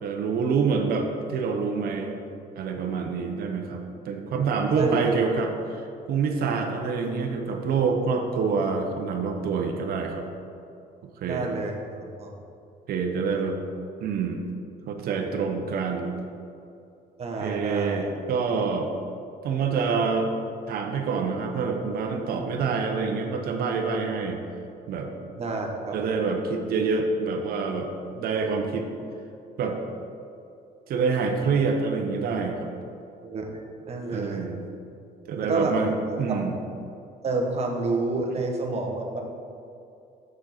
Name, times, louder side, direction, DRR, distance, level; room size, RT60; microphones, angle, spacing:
voice 1, 0.0-2.1 2.6-10.3 11.2-11.5 12.9-13.6 14.0-14.4 14.9-16.2 17.4-18.9 19.4-20.3 20.7-24.4 24.9-25.1 25.9-27.9 28.1-28.9 29.6-29.8 30.9-32.7 34.1-34.7 35.3-35.9 36.2-36.6, right 5 dB, 65° right, 3 dB, 0.9 m, -26 dB
voice 2, 4.8-5.1 11.2-12.3 17.2-18.1 25.4-25.9 33.2-33.5 33.9-34.5 35.4-35.7 36.1-36.4 37.2-39.2, right 3 dB, 40° right, 1 dB, 1.1 m, -29 dB
6.4 x 6.4 x 4.2 m, 2.5 s
cardioid pair, 110°, 17 cm